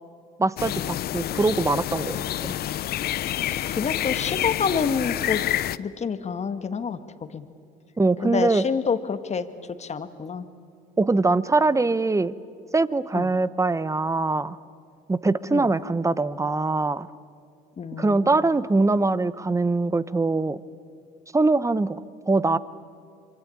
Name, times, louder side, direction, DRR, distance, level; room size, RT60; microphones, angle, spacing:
voice 1, 0.4-2.5 8.0-8.6 11.0-12.3 12.7-14.6 15.1-17.1 18.0-20.6 21.3-22.0 22.3-22.6, right 3 dB, 15° right, 17 dB, 1.0 m, -22 dB
sound 1, 0.6-5.8, left 13 dB, 55° left, 0.7 m, -28 dB
voice 2, 3.5-5.4 5.8-7.5 8.2-9.5 9.8-10.5 13.1-13.3 15.5-15.7 17.8-18.5, left 6 dB, 35° left, 10 dB, 1.8 m, -28 dB
26.0 x 24.5 x 8.7 m, 2.4 s
supercardioid pair, 75°, 19 cm